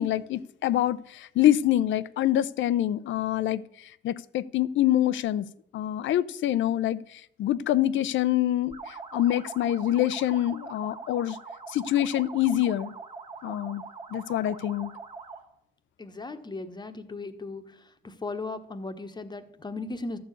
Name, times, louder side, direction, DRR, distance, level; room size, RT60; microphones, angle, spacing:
voice 1, 0.0-3.6 4.0-5.5 5.7-11.4 11.7-12.9 13.4-13.8 14.1-14.9, left 12 dB, 70° left, 0.6 m, -25 dB
sound 1, 8.7-15.5, right 4 dB, 30° right, 1.8 m, -42 dB
voice 2, 16.0-17.6 18.0-20.2, left 3 dB, 20° left, 1.1 m, -37 dB
13.0 x 4.7 x 8.4 m
cardioid pair, 90°, 20 cm